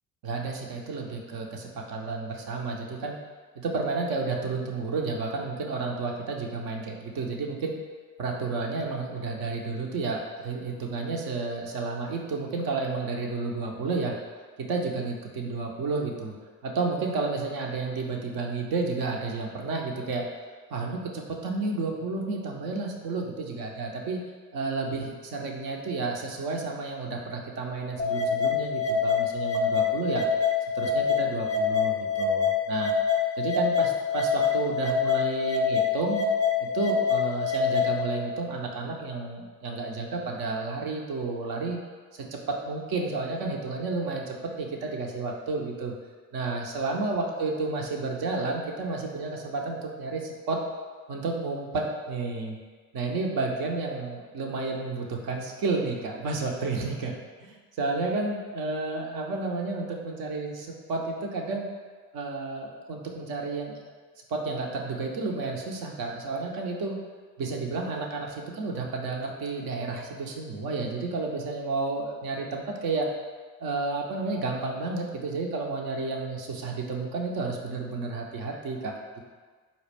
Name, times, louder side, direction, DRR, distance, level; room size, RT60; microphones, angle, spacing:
voice 1, 0.2-3.2 3.6-7.8 8.2-14.1 14.6-16.3 16.6-20.2 20.7-24.2 24.5-30.2 30.7-32.9 33.4-36.2 36.6-41.8 42.1-45.9 46.3-50.6 51.1-52.6 52.9-57.1 57.4-61.7 62.1-63.8 64.3-67.0 67.4-73.1 73.6-79.2, right 3 dB, 55° right, 0 dB, 0.8 m, -31 dB
sound 1, 28.0-38.0, left 6 dB, 15° left, 0.7 m, -26 dB
4.0 x 2.4 x 3.4 m, 1.5 s
hypercardioid pair, 60°, 45 cm